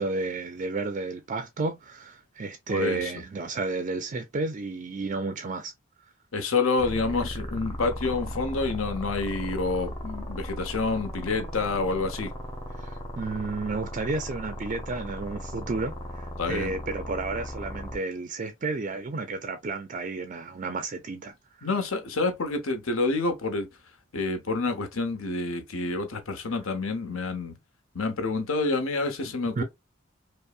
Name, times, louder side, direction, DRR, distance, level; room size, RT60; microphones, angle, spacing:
voice 1, 0.0-5.7 6.0-6.1 12.7-21.7 29.6-29.7, right 3 dB, 35° right, 0.4 m, -32 dB
voice 2, 2.7-3.1 6.3-12.3 16.4-16.8 21.6-23.7 24.1-27.6 27.9-29.6, left 3 dB, 80° left, 0.9 m, -28 dB
sound 1, 6.8-18.0, equal, 20° left, 0.8 m, -36 dB
5.3 x 2.0 x 2.4 m
head